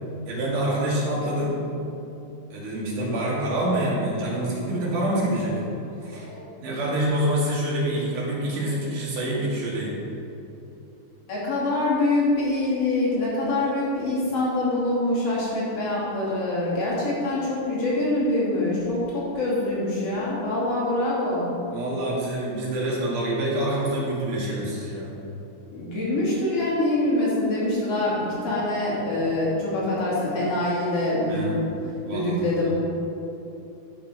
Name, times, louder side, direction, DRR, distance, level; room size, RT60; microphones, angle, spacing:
voice 1, 0.3-1.6 2.5-5.6 6.0-6.3 6.6-10.0 21.7-25.2 31.3-31.7 32.0-32.7, right 1 dB, 85° right, -5 dB, 3.8 m, -26 dB
voice 2, 6.0-6.5 11.2-21.5 25.7-31.6 32.1-32.7, left 2 dB, 50° left, -7 dB, 3.8 m, -25 dB
12.5 x 6.3 x 5.2 m, 2.9 s
omnidirectional pair, 3.5 m